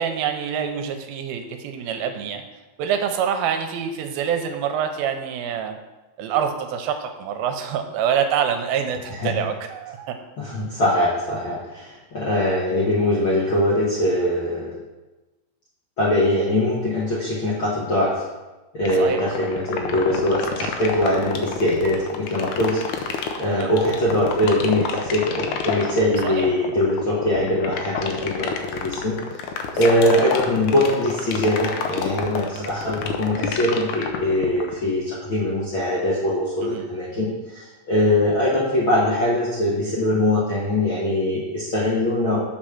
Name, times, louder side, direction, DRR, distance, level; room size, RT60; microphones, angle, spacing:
voice 1, 0.0-2.4 2.8-5.8 6.2-10.2 19.0-19.2 20.6-20.7 23.4-23.7 26.2-26.5 29.9-30.1 32.5-32.7 36.6-36.9 37.2-37.3, right 8 dB, 85° right, 6 dB, 2.5 m, -26 dB
voice 2, 10.4-14.8 16.0-18.2 18.7-29.2 29.8-42.4, left 1 dB, 60° left, -7 dB, 1.3 m, -22 dB
sound 1, 18.8-34.8, left 7 dB, 75° left, 1.9 m, -28 dB
7.4 x 5.0 x 5.8 m, 1.1 s
omnidirectional pair, 4.3 m